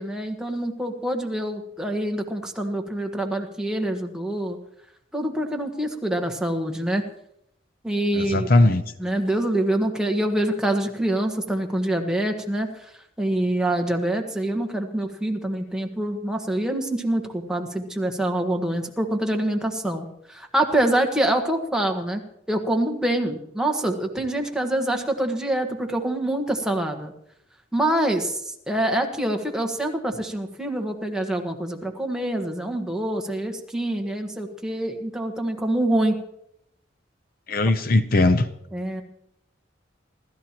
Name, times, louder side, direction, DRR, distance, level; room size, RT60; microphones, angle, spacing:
voice 1, 0.0-4.6 5.1-7.0 7.8-8.7 9.0-12.9 13.2-22.2 22.5-27.1 27.7-36.1 37.6-37.7 38.7-39.0, right 1 dB, 5° right, 3 dB, 1.4 m, -25 dB
voice 2, 8.1-8.8 37.5-38.5, left 2 dB, 50° left, 10 dB, 0.7 m, -19 dB
28.0 x 13.0 x 3.0 m, 0.76 s
head